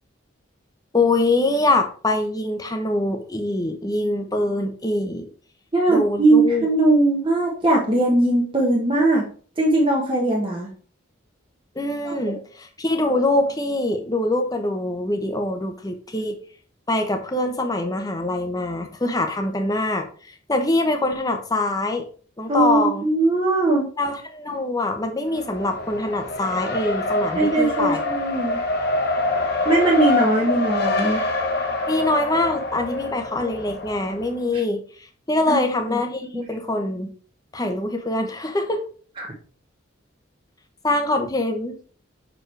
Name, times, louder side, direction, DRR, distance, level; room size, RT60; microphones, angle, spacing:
voice 1, 0.9-5.3 5.9-6.7 11.8-16.4 16.9-22.1 22.4-23.1 24.0-28.0 31.9-34.8 35.3-37.1 37.5-38.8 40.8-41.7, left 2 dB, 20° left, 5 dB, 0.8 m, -24 dB
voice 2, 5.7-9.2 9.6-10.7 12.0-12.2 22.5-23.9 27.3-28.6 29.6-31.3 35.5-35.6 35.9-36.0 36.3-36.5 39.2-39.3, right 2 dB, 25° right, -3 dB, 1.1 m, -20 dB
Race car auto racing, 25.3-34.4, left 2 dB, 50° left, 1.0 m, -25 dB
6.1 x 4.7 x 3.3 m, 0.42 s
head